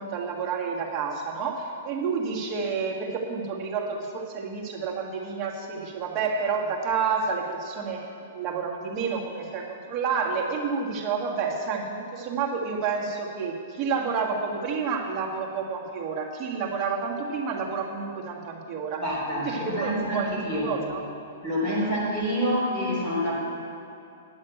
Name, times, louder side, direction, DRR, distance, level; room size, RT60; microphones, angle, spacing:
voice 1, 0.0-8.0 8.3-19.0 19.5-20.3 20.6-21.0 21.6-22.0, right 5 dB, 25° right, -2 dB, 1.6 m, -29 dB
voice 2, 19.0-20.8 21.4-23.3, equal, 10° left, -8 dB, 3.2 m, -27 dB
10.0 x 6.4 x 9.0 m, 2.6 s
hypercardioid pair, 165°, 0 cm